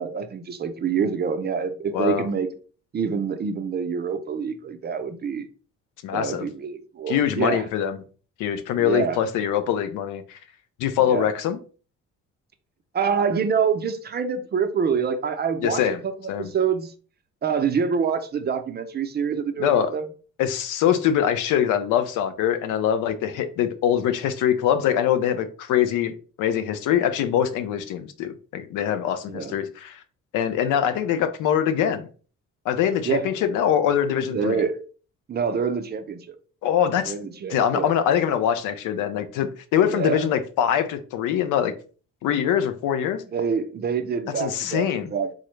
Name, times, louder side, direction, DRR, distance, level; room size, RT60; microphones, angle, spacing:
voice 1, 0.0-2.5 2.9-5.5 6.1-7.6 8.8-9.2 11.0-11.3 12.9-15.8 16.4-16.9 17.4-20.1 29.3-29.6 33.1-33.3 34.3-34.8 35.3-36.2 37.1-37.9 39.8-40.3 43.3-45.3, right 6 dB, 35° right, 0.4 m, -26 dB
voice 2, 1.9-2.3 6.0-6.5 7.1-8.0 8.4-10.4 10.8-11.6 15.6-16.0 16.3-16.5 19.6-19.9 20.4-30.0 30.3-32.1 32.7-34.6 36.6-37.1 37.5-41.7 42.2-43.2 44.4-45.1, left 9 dB, 90° left, 0.5 m, -23 dB
3.7 x 2.0 x 3.0 m
cardioid pair, 90°, 30 cm